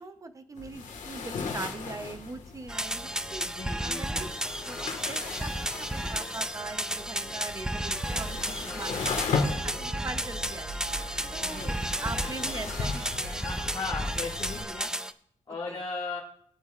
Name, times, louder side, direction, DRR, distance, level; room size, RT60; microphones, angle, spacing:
voice 1, 0.0-3.4 3.8-4.3 4.6-9.0 9.3-10.8 11.3-13.7 14.5-14.7 15.7-15.8, right 3 dB, 25° right, 9 dB, 0.9 m, -41 dB
sound 1, 0.6-14.6, left 4 dB, 85° left, 1.7 m, -37 dB
sound 2, 2.7-15.1, right 1 dB, 5° right, 0.5 m, -33 dB
voice 2, 3.5-4.3 8.5-9.2 10.9-11.8 13.4-14.9 15.5-16.2, left 4 dB, 30° left, -7 dB, 2.2 m, -38 dB
sound 3, 7.5-14.8, right 3 dB, 60° right, 1.2 m, -44 dB
21.5 x 8.7 x 2.5 m, 0.67 s
wide cardioid pair, 145°, 13 cm